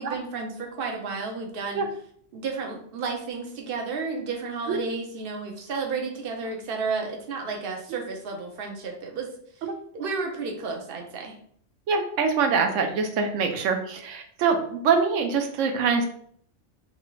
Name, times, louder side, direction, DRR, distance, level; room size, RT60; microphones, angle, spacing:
voice 1, 0.0-1.8 2.3-9.3 9.9-11.3, right 4 dB, 55° right, 1 dB, 0.8 m, -32 dB
voice 2, 11.9-16.0, right 5 dB, 85° right, 5 dB, 0.9 m, -24 dB
3.1 x 2.5 x 3.0 m, 0.62 s
omnidirectional pair, 1.2 m